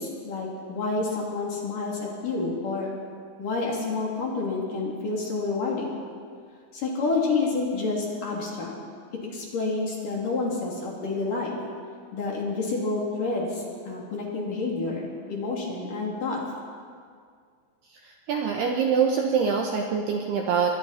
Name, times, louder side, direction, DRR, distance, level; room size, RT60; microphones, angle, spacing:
voice 1, 0.0-2.9 3.4-5.9 6.7-8.7 9.3-11.6 12.1-16.4, left 3 dB, 45° left, -3 dB, 4.2 m, -29 dB
voice 2, 18.0-20.7, right 6 dB, 70° right, 1 dB, 2.6 m, -24 dB
27.5 x 22.5 x 4.4 m, 2.1 s
omnidirectional pair, 5.9 m